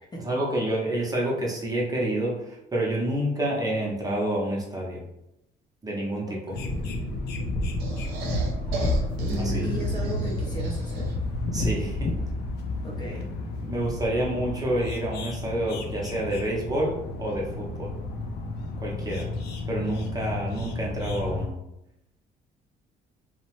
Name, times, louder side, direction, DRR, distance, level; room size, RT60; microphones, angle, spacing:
voice 1, 0.2-5.0 5.8-6.5 9.4-9.6 11.5-12.1 13.6-17.9 18.8-19.3 19.7-21.6, right 1 dB, 20° right, -3 dB, 0.7 m, -28 dB
sound 1, 6.5-21.5, left 2 dB, 75° left, 0.5 m, -31 dB
sound 2, 7.8-11.3, right 1 dB, 75° right, 0.7 m, -32 dB
voice 2, 9.3-11.2 12.8-13.3, left 1 dB, 25° left, -2 dB, 0.6 m, -35 dB
2.7 x 2.0 x 3.0 m, 0.86 s
cardioid pair, 110°, 17 cm